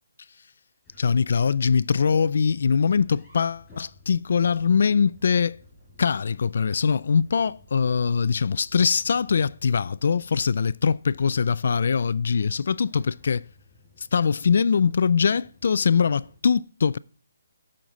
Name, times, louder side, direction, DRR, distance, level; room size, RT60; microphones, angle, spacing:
sound 1, 0.8-16.4, left 1 dB, 5° left, 5.4 m, -55 dB
voice 1, 1.0-5.6 6.0-13.4 14.0-17.0, left 6 dB, 45° left, 0.3 m, -22 dB
15.0 x 6.5 x 3.9 m
hypercardioid pair, 180°, 0 cm